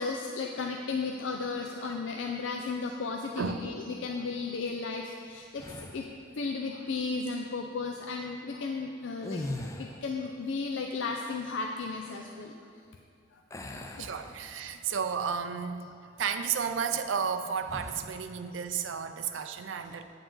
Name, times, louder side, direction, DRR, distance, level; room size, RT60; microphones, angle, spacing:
voice 1, 0.0-6.1 6.4-9.5 9.8-12.5 13.7-14.1, left 4 dB, 85° left, 2 dB, 0.5 m, -34 dB
voice 2, 3.4-3.7 14.0-15.8 16.2-20.0, right 6 dB, 85° right, 8 dB, 0.5 m, -32 dB
sound 1, 5.6-6.2 9.1-10.2 13.5-14.9 15.4-15.6 17.6-18.1, left 1 dB, 15° left, 0.4 m, -40 dB
8.7 x 7.2 x 3.8 m, 2.4 s
head